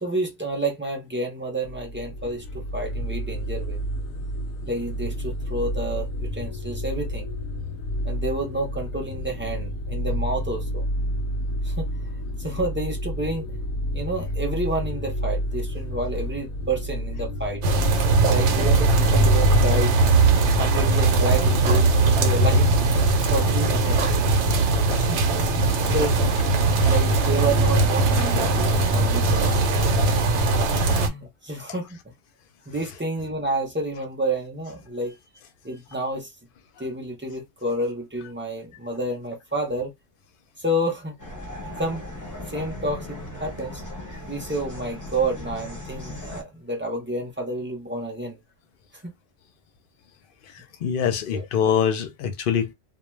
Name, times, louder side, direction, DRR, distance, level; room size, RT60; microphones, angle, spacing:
voice 1, 0.0-3.8 4.6-7.3 8.0-10.8 11.6-12.0 12.4-13.6 13.9-17.6 18.3-20.0 20.5-22.7 23.3-24.2 24.9-25.2 25.9-29.5 30.1-30.2 30.7-32.0 32.7-35.1 35.6-36.3 36.8-39.9 40.6-41.2 41.8-43.8 44.3-48.4 49.0-49.1 51.3-51.4, right 1 dB, 15° right, 0.5 m, -30 dB
sound 1, 1.6-20.8, equal, 90° left, 0.9 m, -29 dB
sound 2, 17.6-31.1, right 3 dB, 75° right, 0.9 m, -20 dB
sound 3, 41.2-46.4, left 1 dB, 20° left, 0.7 m, -37 dB
voice 2, 50.8-52.7, left 7 dB, 60° left, 0.7 m, -24 dB
2.3 x 2.1 x 3.1 m
omnidirectional pair, 1.2 m